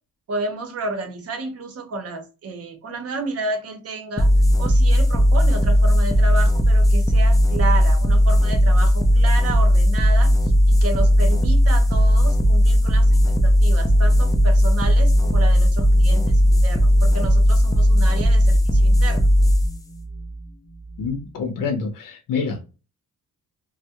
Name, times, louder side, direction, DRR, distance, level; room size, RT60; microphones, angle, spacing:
voice 1, 0.3-4.3 4.6-19.2, right 3 dB, 50° right, 0.7 m, -31 dB
sound 1, 4.2-21.2, equal, 10° left, 0.3 m, -16 dB
voice 2, 21.0-22.6, left 5 dB, 90° left, 0.6 m, -27 dB
2.2 x 2.0 x 2.7 m
cardioid pair, 125°, 32 cm